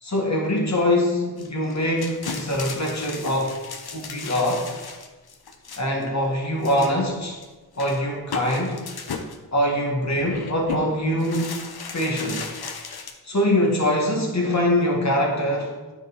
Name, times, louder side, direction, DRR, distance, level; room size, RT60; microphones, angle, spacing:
voice 1, 0.0-3.6 3.9-4.7 5.8-7.4 7.8-8.8 9.5-11.6 11.9-12.5 13.3-15.7, left 1 dB, 45° left, 0 dB, 1.8 m, -23 dB
sound 1, 1.4-6.0 6.6-7.1 7.4-7.5 7.7-9.4 10.1-10.8 11.2-13.1, left 5 dB, 75° left, 0.8 m, -35 dB
9.2 x 5.0 x 4.1 m, 1.2 s
wide cardioid pair, 65°, 38 cm